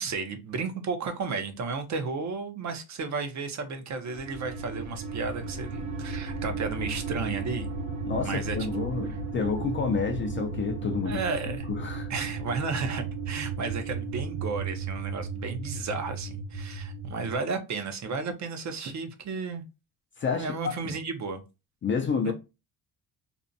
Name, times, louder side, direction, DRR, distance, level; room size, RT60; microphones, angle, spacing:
voice 1, 0.0-7.7 8.2-8.9 11.0-11.7 12.1-19.6 20.4-21.4 22.2-22.3, right 4 dB, 45° right, 0.7 m, -33 dB
sound 1, 4.0-17.3, right 4 dB, 65° right, 1.0 m, -34 dB
voice 2, 8.0-11.2 11.7-12.1 20.2-21.0 21.8-22.3, left 5 dB, 30° left, 0.4 m, -29 dB
2.6 x 2.1 x 2.5 m
cardioid pair, 115°, 39 cm